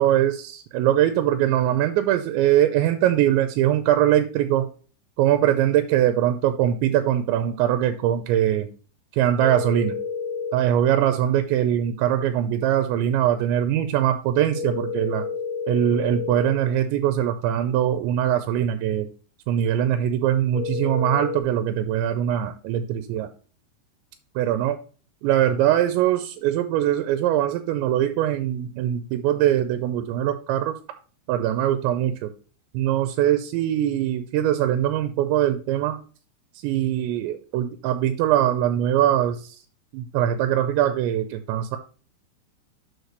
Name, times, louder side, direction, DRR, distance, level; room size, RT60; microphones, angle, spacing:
voice 1, 0.0-4.7 5.2-8.7 9.1-10.0 10.5-15.3 15.7-19.1 19.5-23.3 24.4-24.8 25.2-30.8 31.3-32.3 32.7-36.0 36.6-39.6 39.9-41.8, right 11 dB, 85° right, 8 dB, 2.9 m, -22 dB
sound 1, 9.4-10.5 14.5-16.5 20.5-21.4, left 4 dB, 60° left, 1.1 m, -30 dB
6.6 x 6.6 x 3.2 m, 0.38 s
omnidirectional pair, 5.1 m